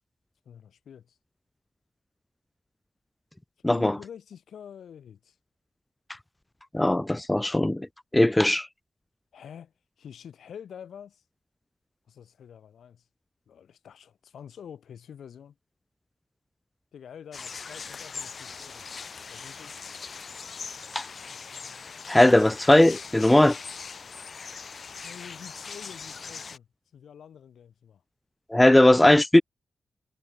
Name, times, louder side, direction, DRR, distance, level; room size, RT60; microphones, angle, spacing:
voice 1, 0.4-1.2 3.7-5.4 8.6-8.7 9.3-11.2 12.1-13.0 13.5-15.6 16.9-18.9 19.3-19.8 25.0-26.7 26.9-28.0, left 8 dB, 85° left, 6.2 m, -46 dB
voice 2, 6.7-7.9 8.1-8.7 20.9-21.0 22.1-23.6 28.5-29.4, left 1 dB, 15° left, 0.5 m, -19 dB
sound 1, 17.3-26.6, left 5 dB, 55° left, 6.5 m, -41 dB
cardioid pair, 80°, 0 cm